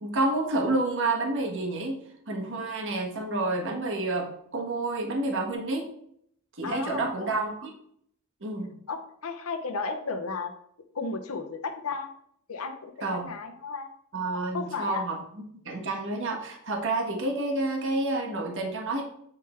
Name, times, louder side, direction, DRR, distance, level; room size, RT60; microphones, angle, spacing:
voice 1, 0.0-5.8 6.5-7.7 8.4-8.7 13.0-13.3 14.1-15.2 15.6-19.0, right 2 dB, 60° right, 1 dB, 1.3 m, -29 dB
voice 2, 6.6-7.3 8.9-10.5 10.9-12.1 12.5-13.9 14.5-15.0, left 4 dB, 75° left, 4 dB, 0.8 m, -34 dB
7.9 x 3.7 x 4.3 m, 0.70 s
head